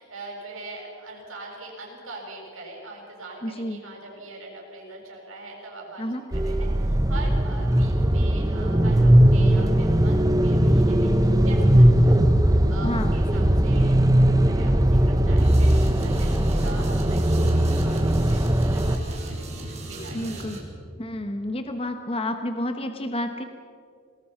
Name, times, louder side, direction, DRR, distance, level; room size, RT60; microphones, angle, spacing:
voice 1, 0.0-6.0 6.3-20.3, right 2 dB, 75° right, -1 dB, 7.0 m, -42 dB
voice 2, 3.4-3.8 6.0-6.2 12.8-13.1 20.1-20.6 21.0-23.4, left 1 dB, 30° left, 6 dB, 1.1 m, -30 dB
sound 1, 6.3-19.0, right 1 dB, 20° right, 0.9 m, -19 dB
sound 2, 15.4-20.6, right 1 dB, 35° right, 4.8 m, -37 dB
28.5 x 20.0 x 5.8 m, 2.4 s
head